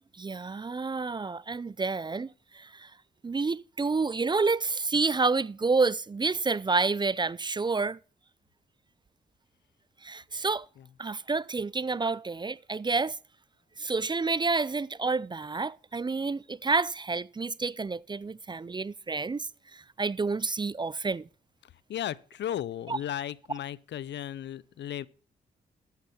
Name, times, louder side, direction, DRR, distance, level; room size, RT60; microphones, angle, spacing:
voice 1, 0.2-2.3 2.5-2.9 3.2-8.0 10.0-10.7 11.0-13.2 13.8-21.2 22.9-23.0, right 4 dB, 25° right, 0.4 m, -29 dB
voice 2, 21.9-25.1, left 11 dB, 70° left, 0.6 m, -35 dB
13.0 x 9.6 x 4.3 m
supercardioid pair, 55°, 19 cm